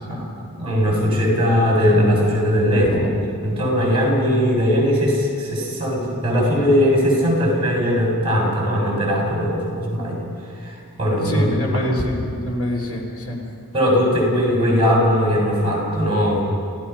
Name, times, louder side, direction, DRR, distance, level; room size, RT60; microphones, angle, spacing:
voice 1, 0.0-3.0 3.4-10.2 10.6-11.4 11.7-11.8 13.7-16.4, equal, 25° right, -2 dB, 7.0 m, -19 dB
voice 2, 11.2-13.4, equal, 70° left, 0 dB, 3.8 m, -25 dB
29.0 x 16.5 x 5.8 m, 2.4 s
head